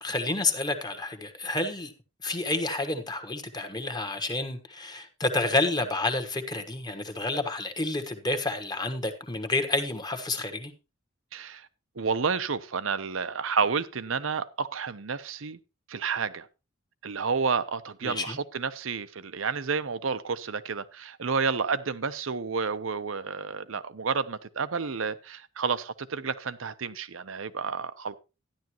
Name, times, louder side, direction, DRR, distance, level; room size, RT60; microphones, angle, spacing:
voice 1, 0.0-1.9 2.2-10.7 18.0-18.4, left 2 dB, 20° left, 1.3 m, -29 dB
voice 2, 11.3-11.7 12.0-15.6 15.9-16.5 17.0-28.2, right 5 dB, 80° right, 0.8 m, -30 dB
13.0 x 10.5 x 3.0 m
head